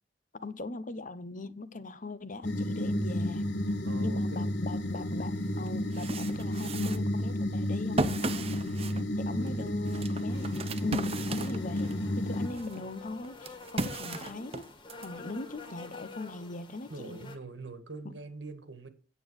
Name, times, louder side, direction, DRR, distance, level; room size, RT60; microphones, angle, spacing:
voice 1, 0.3-3.4 4.0-8.5 9.2-10.5 10.8-14.7 15.0-17.3 18.0-18.1, left 3 dB, 45° left, 1.0 m, -40 dB
sound 1, 2.4-12.5, left 1 dB, 85° left, 1.5 m, -32 dB
voice 2, 3.8-4.6 9.3-9.8 16.9-18.9, right 3 dB, 85° right, 1.9 m, -44 dB
sound 2, 5.1-5.2 5.7-12.0 12.5-15.1, right 3 dB, 35° right, 0.7 m, -36 dB
sound 3, 10.3-17.4, left 3 dB, 25° left, 2.0 m, -48 dB
9.3 x 8.2 x 6.4 m
head